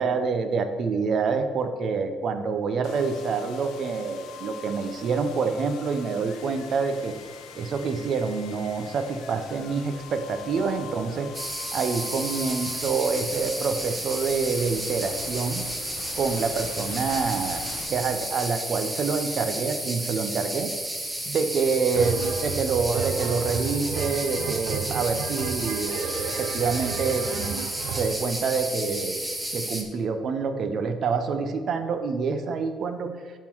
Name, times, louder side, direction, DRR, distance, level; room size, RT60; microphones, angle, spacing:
voice 1, 0.0-7.2 7.6-11.3 11.7-15.7 16.2-17.6 17.9-20.7 21.3-27.6 28.0-29.2 29.5-33.1, right 5 dB, 45° right, 8 dB, 0.7 m, -27 dB
sound 1, 2.8-18.7, left 7 dB, 80° left, 0.8 m, -43 dB
sound 2, 11.3-29.8, right 1 dB, 10° right, 0.8 m, -32 dB
sound 3, 21.9-28.2, right 7 dB, 80° right, 0.5 m, -33 dB
11.5 x 3.9 x 4.6 m, 1.5 s
cardioid pair, 160°, 0 cm